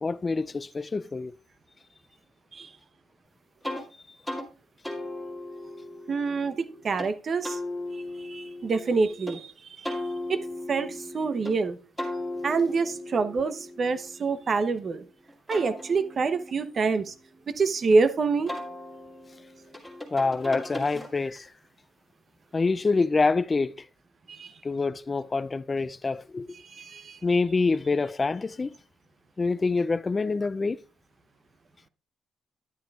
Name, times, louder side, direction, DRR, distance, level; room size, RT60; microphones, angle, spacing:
voice 1, 0.0-1.3 20.1-21.5 22.5-23.8 24.6-26.5 27.2-28.8 29.4-30.8, left 3 dB, 30° left, 0.3 m, -26 dB
sound 1, 3.6-3.9 4.2-4.5 4.8-7.1 7.4-9.4 9.8-11.6 12.0-14.9 15.3-18.0 18.5-21.5, left 1 dB, ahead, 2.2 m, -38 dB
voice 2, 6.1-6.5 6.8-7.6 8.2-9.5 9.8-9.9 10.3-10.4 10.7-11.8 12.4-15.0 15.5-17.1 17.6-18.5 24.3-24.5 26.8-27.2, right 4 dB, 45° right, 0.8 m, -26 dB
10.5 x 9.2 x 2.4 m
cardioid pair, 90°, 0 cm